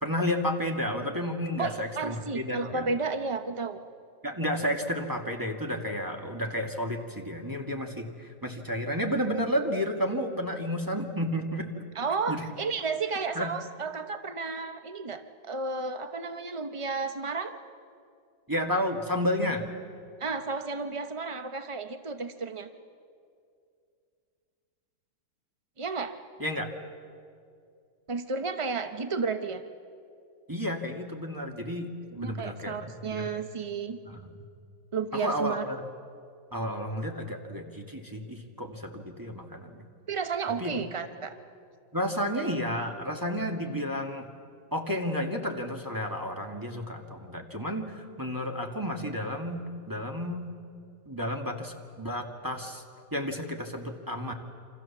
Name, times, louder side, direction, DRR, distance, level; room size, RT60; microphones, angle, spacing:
voice 1, 0.0-2.8 4.2-11.7 12.3-12.4 13.3-13.5 18.5-19.7 26.4-26.7 30.5-32.8 33.1-33.3 34.0-34.2 35.1-35.9 36.5-39.8 40.6-40.8 41.9-44.3 44.7-50.6 51.1-52.8 53.1-54.3, equal, 10° right, 2 dB, 1.9 m, -31 dB
voice 2, 1.6-3.8 11.9-17.5 20.2-22.7 25.8-26.2 28.1-29.6 32.1-34.0 34.9-35.6 40.1-41.4, right 4 dB, 45° right, 8 dB, 0.4 m, -32 dB
28.5 x 26.0 x 7.3 m, 2.4 s
omnidirectional pair, 2.0 m